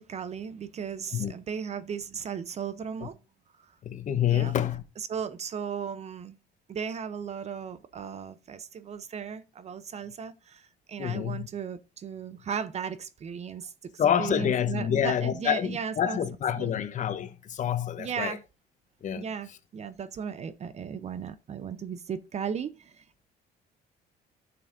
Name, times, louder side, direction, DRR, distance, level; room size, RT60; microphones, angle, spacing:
voice 1, 0.0-3.2 4.3-4.5 5.0-6.3 6.7-13.7 14.2-16.2 16.6-16.7 18.0-18.4 19.1-23.2, right 7 dB, 40° right, 0.7 m, -36 dB
voice 2, 3.8-4.8 11.0-11.5 14.0-18.4 19.0-19.2, left 9 dB, 50° left, 1.0 m, -27 dB
10.5 x 6.9 x 2.6 m
cardioid pair, 110°, 17 cm